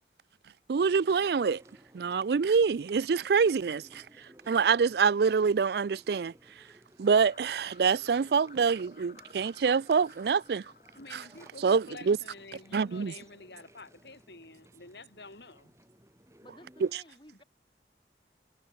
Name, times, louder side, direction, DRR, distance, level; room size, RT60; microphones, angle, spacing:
voice 1, 0.7-1.6 1.9-4.0 4.5-6.3 7.0-10.6 11.1-11.2 11.6-12.2 12.7-13.1, right 5 dB, 65° right, 0.4 m, -26 dB
Chewing mastication, 0.8-16.9, equal, 15° right, 5.5 m, -59 dB
sound 1, 7.0-12.1, left 5 dB, 50° left, 1.2 m, -57 dB
voice 2, 11.0-15.7, left 3 dB, 80° left, 5.3 m, -49 dB
voice 3, 16.4-17.4, left 1 dB, 25° left, 3.8 m, -55 dB
head